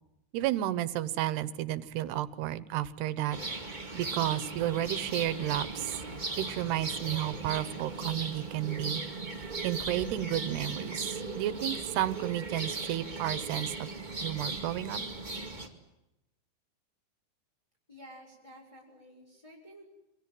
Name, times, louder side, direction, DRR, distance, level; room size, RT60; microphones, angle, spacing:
voice 1, 0.3-3.4 3.9-5.9 6.4-9.0 9.6-13.9 14.2-15.0, right 13 dB, 90° right, 16 dB, 3.2 m, -32 dB
sound 1, 3.3-15.7, right 3 dB, 15° right, 1.5 m, -37 dB
voice 2, 17.9-19.9, equal, 5° left, -1 dB, 6.2 m, -52 dB
27.5 x 24.5 x 7.8 m, 0.91 s
omnidirectional pair, 4.6 m